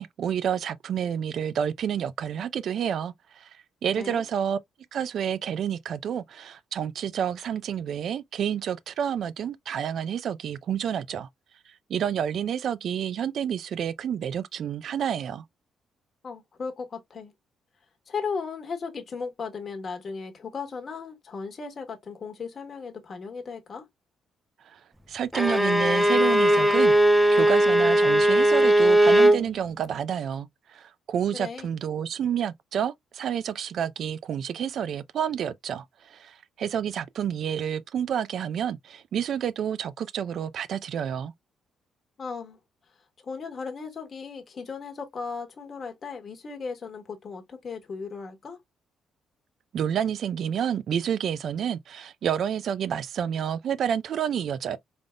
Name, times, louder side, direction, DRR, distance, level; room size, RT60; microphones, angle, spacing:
voice 1, 0.0-3.5 3.8-4.6 4.9-11.3 11.9-15.4 25.1-26.9 27.3-30.5 30.7-35.8 36.1-41.3 49.7-54.8, right 8 dB, 65° right, 0.5 m, -29 dB
voice 2, 16.2-17.3 18.1-23.8 31.3-31.7 42.2-42.6 43.2-48.6, left 5 dB, 45° left, 1.1 m, -36 dB
Bowed string instrument, 25.3-29.4, right 1 dB, ahead, 0.5 m, -19 dB
3.9 x 3.5 x 2.2 m
cardioid pair, 90°, 0 cm